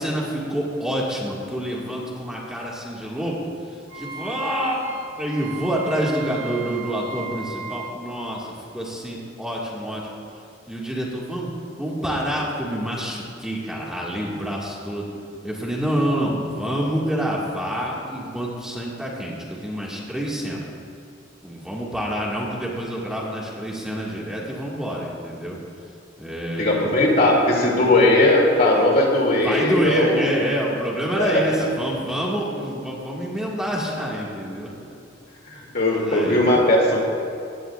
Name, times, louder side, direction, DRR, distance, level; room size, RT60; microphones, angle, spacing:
voice 1, 0.0-3.4 3.9-10.1 10.7-11.5 11.8-15.1 15.4-20.7 21.4-25.6 26.2-26.9 29.4-34.7 35.9-36.5, equal, 5° right, -5 dB, 2.0 m, -27 dB
Wind instrument woodwind instrument, 3.9-8.0, right 5 dB, 85° right, 2.1 m, -36 dB
voice 2, 26.6-30.3 31.2-31.3 35.5-37.0, left 1 dB, 55° left, -2 dB, 2.7 m, -18 dB
19.0 x 17.0 x 2.5 m, 2.5 s
head